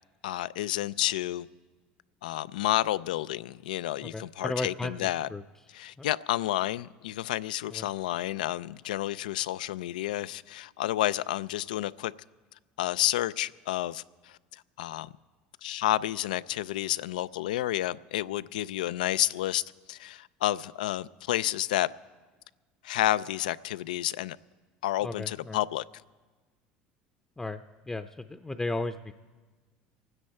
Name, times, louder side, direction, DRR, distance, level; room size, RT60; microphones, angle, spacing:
voice 1, 0.2-1.5 2.2-5.3 5.7-12.1 12.8-14.4 14.8-15.1 15.6-19.6 19.9-21.9 22.8-24.4 24.8-25.8, left 14 dB, 85° left, 0.4 m, -30 dB
voice 2, 4.0-5.4 6.0-6.1 7.7-7.9 25.0-25.6 27.4-29.1, left 2 dB, 15° left, 0.6 m, -35 dB
25.0 x 9.8 x 4.3 m
hypercardioid pair, 80°, 4 cm